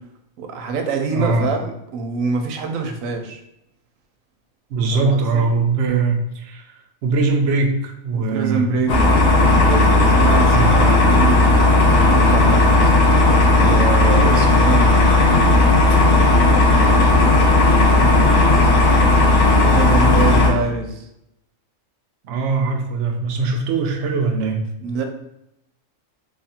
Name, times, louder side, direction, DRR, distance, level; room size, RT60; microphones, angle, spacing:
voice 1, 0.4-3.4 4.9-5.5 8.1-8.9 9.6-11.8 12.1-14.9 18.0-18.7 19.6-21.1 24.8-25.0, right 4 dB, 90° right, 4 dB, 1.0 m, -26 dB
voice 2, 1.1-1.5 4.7-6.7 7.0-8.8 10.5-10.8 22.2-24.6, right 4 dB, 65° right, 3 dB, 0.8 m, -21 dB
sound 1, 8.9-20.5, left 2 dB, 65° left, 1.0 m, -14 dB
3.2 x 2.4 x 4.2 m, 0.80 s
omnidirectional pair, 1.4 m